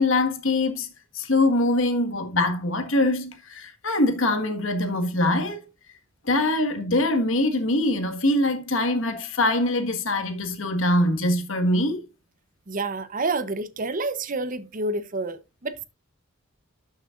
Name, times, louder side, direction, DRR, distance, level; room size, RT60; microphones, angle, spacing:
voice 1, 0.0-5.6 6.2-12.1, left 2 dB, 70° left, 1.6 m, -23 dB
voice 2, 12.7-15.9, right 3 dB, 40° right, 0.8 m, -29 dB
12.0 x 6.5 x 2.5 m
head